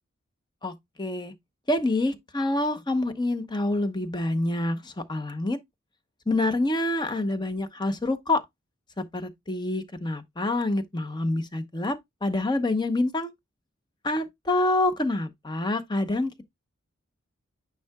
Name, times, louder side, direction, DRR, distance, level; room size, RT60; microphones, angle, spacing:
voice 1, 0.6-1.3 1.7-5.6 6.3-8.4 9.0-13.3 14.0-16.4, left 2 dB, 20° left, 0.8 m, -27 dB
9.3 x 4.6 x 2.3 m
head